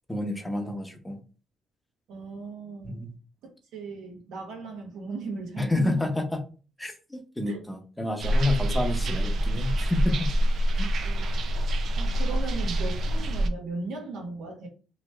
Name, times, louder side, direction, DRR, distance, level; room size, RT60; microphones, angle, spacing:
voice 1, 0.1-1.2 2.8-3.1 5.6-6.4 6.8-10.3 10.8-10.9, left 2 dB, 10° left, 0.9 m, -29 dB
voice 2, 2.1-3.1 3.7-6.2 7.4-7.6 11.0-11.4 12.0-14.7, right 3 dB, 85° right, 1.2 m, -37 dB
sound 1, 8.2-13.5, right 1 dB, 65° right, 0.5 m, -26 dB
3.1 x 2.8 x 3.4 m
cardioid pair, 90°, 0 cm